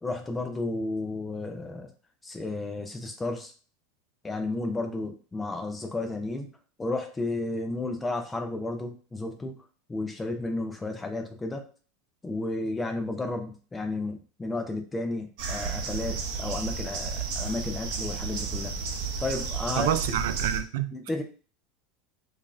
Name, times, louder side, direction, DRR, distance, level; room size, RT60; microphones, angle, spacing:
voice 1, 0.0-1.9 2.2-3.5 4.2-6.5 6.8-9.6 9.9-11.7 12.2-18.8 19.2-20.0 20.9-21.2, left 2 dB, 10° left, 0.4 m, -32 dB
sound 1, 15.4-20.6, right 4 dB, 50° right, 0.7 m, -32 dB
voice 2, 19.8-21.0, right 11 dB, 85° right, 0.3 m, -28 dB
5.0 x 2.5 x 2.5 m
supercardioid pair, 170°, 0 cm